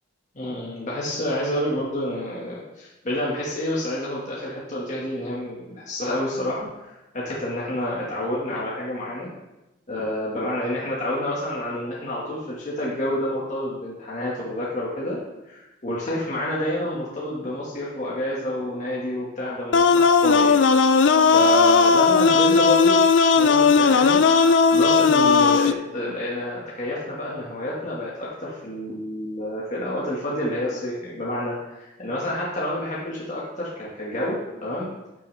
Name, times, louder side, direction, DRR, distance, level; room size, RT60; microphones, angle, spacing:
voice 1, 0.3-9.3 9.9-15.2 15.4-20.6 21.3-23.0 23.3-34.9, left 1 dB, 40° left, -6 dB, 1.7 m, -29 dB
sound 1, 19.7-25.7, left 5 dB, 65° left, 0.4 m, -16 dB
13.0 x 6.3 x 3.4 m, 0.99 s
head